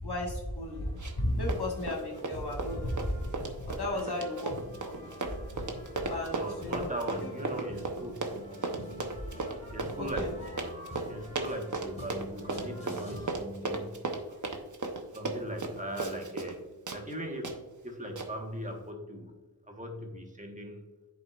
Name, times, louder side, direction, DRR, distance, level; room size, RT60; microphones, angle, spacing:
voice 1, 0.0-3.2 3.6-4.6 4.8-5.2 6.0-6.9 10.0-10.3, left 1 dB, 85° left, -1 dB, 1.5 m, -34 dB
sound 1, 0.7-13.4, left 1 dB, 20° left, 2.0 m, -47 dB
Run, 1.0-1.2 1.5-16.6 16.9-17.0 17.4-17.6 18.2-18.3, right 3 dB, 50° right, 0.9 m, -35 dB
voice 2, 3.9-4.2 6.3-8.4 9.7-14.0 14.3-14.4 15.1-19.4 19.7-20.8, right 1 dB, 20° right, 1 dB, 1.2 m, -39 dB
10.5 x 4.7 x 2.4 m, 1.2 s
wide cardioid pair, 75°, 38 cm